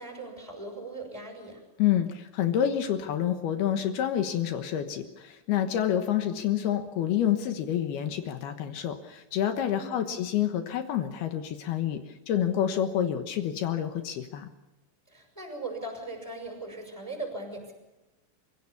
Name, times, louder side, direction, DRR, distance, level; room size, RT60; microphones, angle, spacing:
voice 1, 0.0-1.6 9.7-10.1 15.1-17.7, right 2 dB, 5° left, 2 dB, 6.7 m, -39 dB
voice 2, 1.8-12.0 12.3-14.5, left 10 dB, 65° left, 7 dB, 2.9 m, -28 dB
29.0 x 17.0 x 7.1 m, 1.0 s
omnidirectional pair, 5.4 m